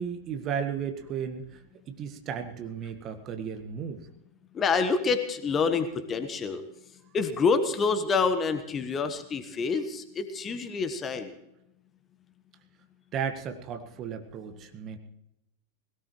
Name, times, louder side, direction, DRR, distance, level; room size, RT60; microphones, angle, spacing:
voice 1, 0.0-1.6 1.9-4.1 13.1-15.0, right 7 dB, 35° right, 7 dB, 1.6 m, -34 dB
voice 2, 4.5-6.6 7.1-11.3, left 4 dB, 25° left, 9 dB, 1.3 m, -27 dB
20.5 x 17.5 x 3.2 m, 0.82 s
figure-of-eight pair, 90°, 0 cm